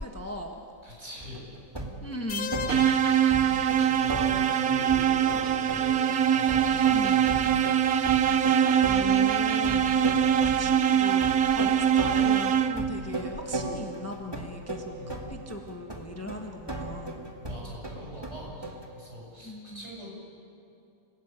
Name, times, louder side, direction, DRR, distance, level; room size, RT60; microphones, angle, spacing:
voice 1, 0.0-0.6 2.0-2.6 6.9-7.2 8.9-10.1 10.4-17.2 19.4-19.8, equal, 10° left, 2 dB, 1.4 m, -38 dB
voice 2, 0.8-1.5 3.2-3.3 3.8-7.8 14.9-15.1 17.4-20.1, equal, 55° right, -4 dB, 7.6 m, -44 dB
sound 1, 1.2-2.2 2.5-18.9, right 2 dB, 15° right, 2.3 m, -36 dB
sound 2, 2.3-4.3, left 6 dB, 85° left, 1.4 m, -36 dB
sound 3, 2.7-13.0, right 9 dB, 80° right, 1.4 m, -23 dB
28.0 x 18.5 x 8.9 m, 2.7 s
omnidirectional pair, 1.5 m